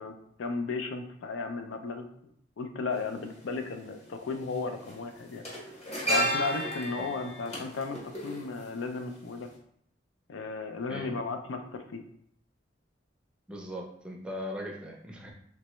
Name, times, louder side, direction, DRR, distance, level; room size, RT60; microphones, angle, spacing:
voice 1, 0.0-2.1 2.6-5.4 6.1-9.5 10.3-12.0, left 4 dB, 85° left, 6 dB, 0.4 m, -35 dB
sound 1, 2.9-3.0 4.3-4.5 4.8-9.1 9.4-9.5, equal, 35° left, 0.9 m, -32 dB
voice 2, 13.5-15.3, equal, 5° right, -1 dB, 0.5 m, -39 dB
3.3 x 3.0 x 3.0 m, 0.68 s
head